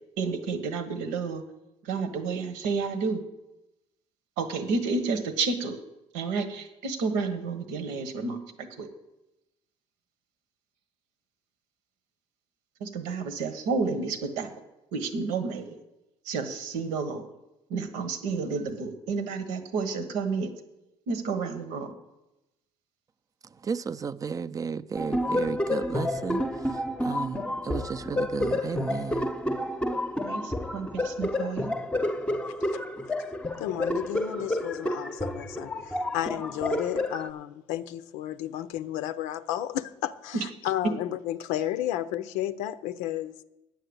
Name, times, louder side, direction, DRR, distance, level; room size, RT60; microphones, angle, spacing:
voice 1, 0.2-1.4 1.8-3.2 4.4-5.8 6.1-8.9 12.8-14.5 14.9-15.8 16.2-17.3 17.7-20.5 21.1-21.9 30.2-31.7, right 4 dB, 90° right, 8 dB, 1.3 m, -30 dB
voice 2, 23.5-29.3, right 6 dB, 30° right, 15 dB, 0.4 m, -34 dB
sound 1, 25.0-37.3, left 1 dB, 10° left, 0.8 m, -30 dB
voice 3, 33.6-43.4, left 12 dB, 85° left, 12 dB, 0.5 m, -32 dB
9.1 x 6.7 x 8.0 m, 0.94 s
cardioid pair, 100°, 12 cm